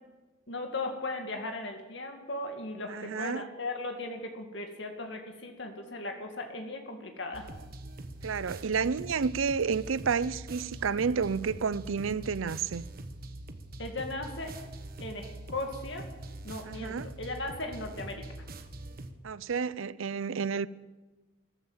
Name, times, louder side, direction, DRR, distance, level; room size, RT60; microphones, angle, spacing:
voice 1, 0.5-7.5 13.8-14.6 15.0-16.1 16.4-18.3, left 2 dB, 65° left, 2.2 m, -37 dB
voice 2, 2.9-3.5 8.2-12.8 16.6-17.1 19.2-20.7, right 5 dB, 90° right, 0.5 m, -30 dB
sound 1, 7.3-19.1, right 1 dB, 50° right, 1.2 m, -43 dB
14.0 x 14.0 x 7.3 m
head